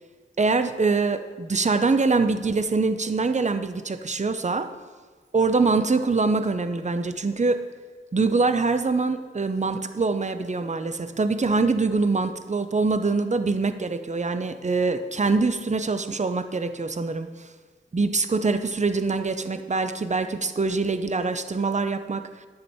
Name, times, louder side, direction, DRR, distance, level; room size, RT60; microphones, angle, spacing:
voice 1, 0.4-4.7 5.3-7.6 8.1-17.3 17.9-22.5, right 3 dB, 35° right, 10 dB, 0.6 m, -24 dB
11.0 x 6.9 x 4.4 m, 1.4 s
wide cardioid pair, 50°, 21 cm